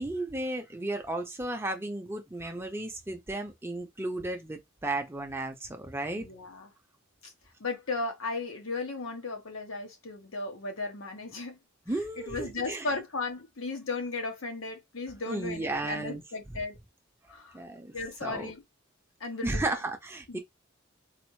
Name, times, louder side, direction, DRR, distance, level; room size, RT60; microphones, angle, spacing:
voice 1, 0.0-6.3 11.9-12.9 15.3-16.2 17.5-17.9 18.2-18.5 19.4-20.4, right 2 dB, 10° right, 0.5 m, -34 dB
voice 2, 6.2-6.7 7.2-7.3 7.6-11.6 12.2-16.8 17.3-17.6 17.9-18.6 19.2-19.8 20.3-20.4, left 3 dB, 85° left, 1.1 m, -36 dB
4.1 x 2.0 x 3.1 m
head